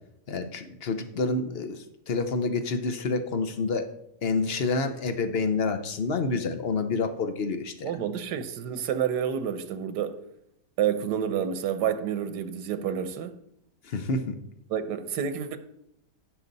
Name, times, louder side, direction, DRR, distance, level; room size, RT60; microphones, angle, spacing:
voice 1, 0.3-3.9 4.2-7.9 13.8-14.4, left 3 dB, 45° left, 0.9 m, -28 dB
voice 2, 7.8-10.2 10.8-13.4 14.7-15.6, right 8 dB, 85° right, 1.4 m, -29 dB
16.0 x 6.1 x 4.0 m
omnidirectional pair, 1.8 m